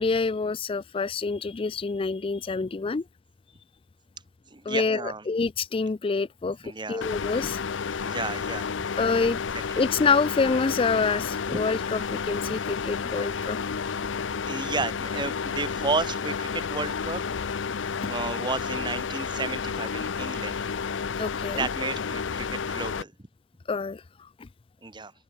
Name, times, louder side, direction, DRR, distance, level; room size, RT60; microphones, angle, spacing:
voice 1, 0.0-3.0 4.7-7.6 9.0-9.4 9.8-13.6 21.2-21.7 23.7-24.5, left 4 dB, 30° left, 0.4 m, -27 dB
voice 2, 4.5-5.2 6.6-7.1 7.4-7.5 8.0-8.9 11.5-11.6 12.5-12.6 14.5-17.2 18.1-20.6 21.6-23.1 24.8-25.1, right 3 dB, 25° right, 1.6 m, -32 dB
sound 1, 7.0-23.0, left 6 dB, 85° left, 0.6 m, -31 dB
open air
head